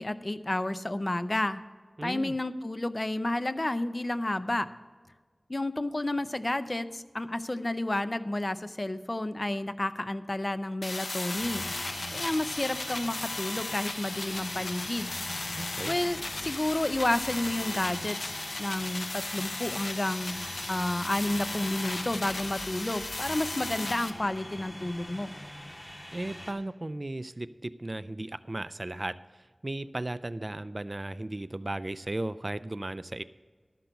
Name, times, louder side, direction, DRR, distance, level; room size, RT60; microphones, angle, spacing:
voice 1, 0.0-1.6 2.0-4.7 5.5-11.7 12.1-15.1 15.9-18.3 18.6-25.3, left 1 dB, 45° left, 12 dB, 0.5 m, -31 dB
voice 2, 2.0-2.3 15.5-15.9 26.1-33.2, right 1 dB, 45° right, 14 dB, 0.4 m, -36 dB
sound 1, 10.8-24.1, left 2 dB, 90° left, 0.7 m, -36 dB
sound 2, 11.4-26.5, equal, 25° left, 2.1 m, -43 dB
12.5 x 6.0 x 6.7 m, 1.4 s
wide cardioid pair, 50°, 0 cm